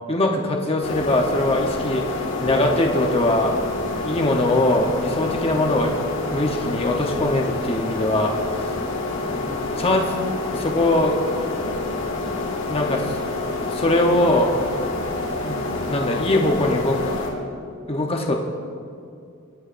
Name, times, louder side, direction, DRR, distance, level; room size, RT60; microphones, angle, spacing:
voice 1, 0.1-3.5 4.0-5.9 6.3-8.3 9.8-10.1 10.5-11.2 12.7-13.2 13.7-14.5 15.4-17.2 17.9-18.4, left 1 dB, 25° left, 1 dB, 0.9 m, -21 dB
sound 1, 0.8-17.3, left 2 dB, 65° left, 2.0 m, -28 dB
24.5 x 9.7 x 2.6 m, 2.4 s
head